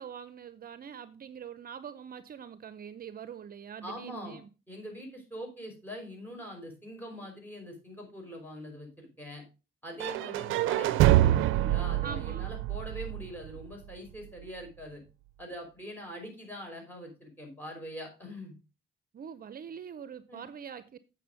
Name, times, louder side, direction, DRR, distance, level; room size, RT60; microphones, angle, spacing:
voice 1, 0.0-4.5 12.0-12.5 19.1-20.9, right 7 dB, 50° right, 0.7 m, -43 dB
voice 2, 3.8-4.4 4.7-9.4 9.8-15.0 15.4-18.6 20.3-20.4, equal, 10° left, 5.3 m, -43 dB
sound 1, 10.0-13.9, right 14 dB, 90° right, 0.5 m, -26 dB
8.5 x 6.3 x 5.1 m
cardioid pair, 90°, 20 cm